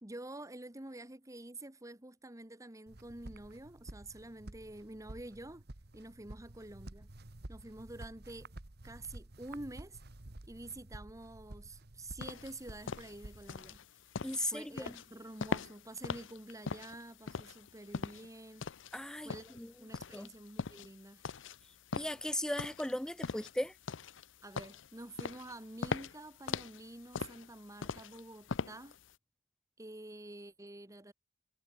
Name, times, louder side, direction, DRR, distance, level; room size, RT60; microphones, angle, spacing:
voice 1, 0.0-5.6 5.9-7.1 7.5-8.5 8.8-10.0 10.5-14.0 14.4-18.7 19.2-21.2 24.4-29.0 29.8-31.1, right 1 dB, 15° right, 1.5 m, -48 dB
sound 1, 2.9-13.8, right 1 dB, 60° right, 1.6 m, -51 dB
sound 2, 12.2-29.1, left 5 dB, 80° left, 0.7 m, -41 dB
voice 2, 14.2-15.0 18.9-19.7 20.1-20.3 21.9-23.7, left 1 dB, 5° left, 0.4 m, -37 dB
head